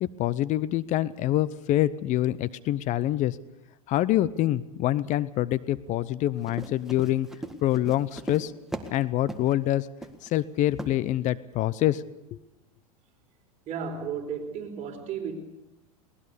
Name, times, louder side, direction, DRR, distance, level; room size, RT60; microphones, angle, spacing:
voice 1, 0.0-3.4 3.9-7.3 7.6-8.5 8.9-9.9 10.2-12.0 12.3-12.4, left 14 dB, 40° left, 0.8 m, -26 dB
Run, 6.4-9.0 9.3-9.5 10.0-10.3 10.8-11.0, right 1 dB, ahead, 1.8 m, -38 dB
voice 2, 13.7-15.3, right 6 dB, 40° right, 4.2 m, -33 dB
21.5 x 18.5 x 6.8 m
hypercardioid pair, 105°, 19 cm